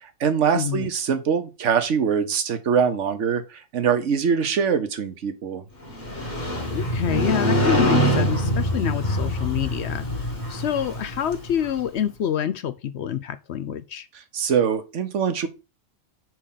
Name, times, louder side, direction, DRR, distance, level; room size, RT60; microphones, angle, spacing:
voice 1, 0.0-5.6 14.3-15.5, right 7 dB, 65° right, 1.2 m, -23 dB
voice 2, 0.5-0.9 6.7-10.0 10.5-14.1, left 9 dB, 65° left, 0.8 m, -27 dB
Motorcycle, 5.9-11.8, equal, 35° left, 1.8 m, -24 dB
4.8 x 4.6 x 5.5 m
omnidirectional pair, 1.3 m